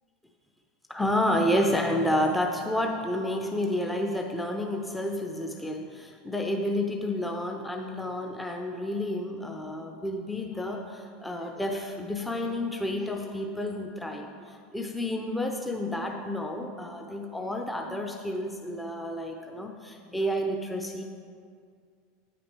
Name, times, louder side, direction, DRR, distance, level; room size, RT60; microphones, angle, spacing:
voice 1, 0.9-21.0, left 1 dB, 5° left, 2 dB, 0.6 m, -30 dB
8.8 x 6.0 x 4.6 m, 2.2 s
figure-of-eight pair, 80°, 0 cm